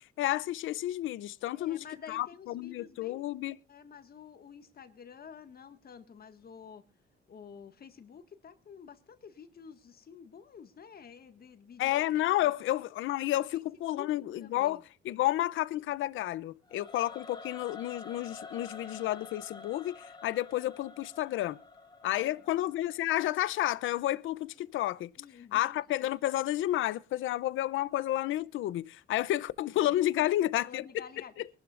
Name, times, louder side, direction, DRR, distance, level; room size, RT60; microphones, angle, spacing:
voice 1, 0.2-3.6 11.8-21.6 22.0-25.1 25.5-30.8, left 14 dB, 80° left, 0.7 m, -31 dB
voice 2, 1.5-3.2 3.7-6.8 7.3-11.9 12.6-12.7 13.5-13.6 13.9-14.1 14.4-14.8 22.2-22.6 25.2-25.8 29.7-29.8 30.2-31.3, left 7 dB, 50° left, 1.8 m, -50 dB
Singing / Musical instrument, 16.7-23.8, left 4 dB, 20° left, 1.7 m, -49 dB
23.5 x 12.0 x 2.5 m
cardioid pair, 90°, 20 cm